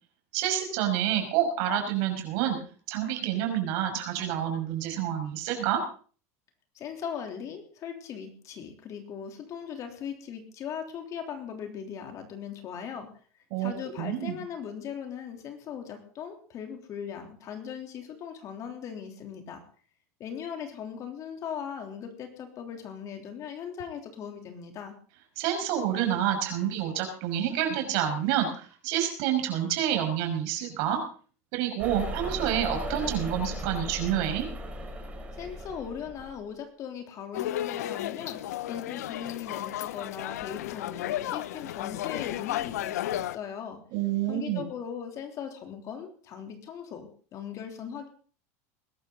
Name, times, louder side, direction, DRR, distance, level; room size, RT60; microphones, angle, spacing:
voice 1, 0.3-2.6 2.9-5.8 13.5-13.7 14.0-14.4 25.4-31.0 31.5-34.5 43.9-44.6, right 10 dB, 60° right, 4 dB, 5.7 m, -28 dB
voice 2, 6.8-13.1 13.6-19.6 20.2-24.9 35.3-38.4 38.7-43.8 44.3-48.1, left 8 dB, 40° left, 5 dB, 3.5 m, -39 dB
sound 1, 31.8-36.3, equal, 15° right, 5.4 m, -37 dB
sound 2, 37.3-43.4, left 13 dB, 90° left, 0.6 m, -33 dB
21.0 x 12.5 x 4.0 m, 0.41 s
supercardioid pair, 125°, 8 cm